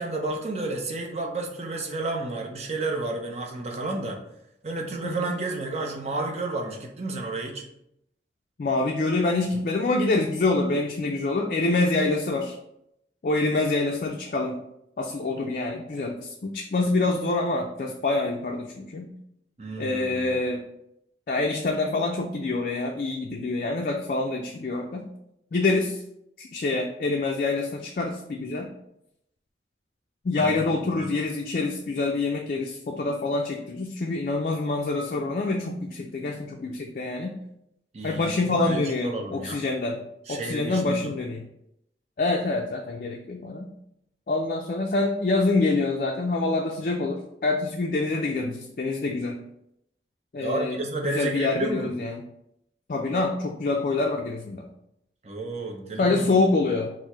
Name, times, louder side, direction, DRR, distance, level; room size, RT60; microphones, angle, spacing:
voice 1, 0.0-4.2 4.6-7.6 19.6-20.4 30.4-30.6 31.0-31.1 37.9-39.6 40.3-41.1 50.4-51.9 55.2-56.3, right 2 dB, 35° right, 1 dB, 0.6 m, -31 dB
voice 2, 8.6-12.6 13.2-14.6 15.0-19.1 19.8-20.6 21.3-25.1 25.5-26.0 26.4-28.7 30.2-37.3 38.0-40.0 40.3-41.4 42.2-43.7 44.3-49.4 50.3-50.8 51.0-52.2 52.9-54.6 56.0-56.9, left 3 dB, 50° left, 1 dB, 0.3 m, -26 dB
4.5 x 2.0 x 4.5 m, 0.79 s
head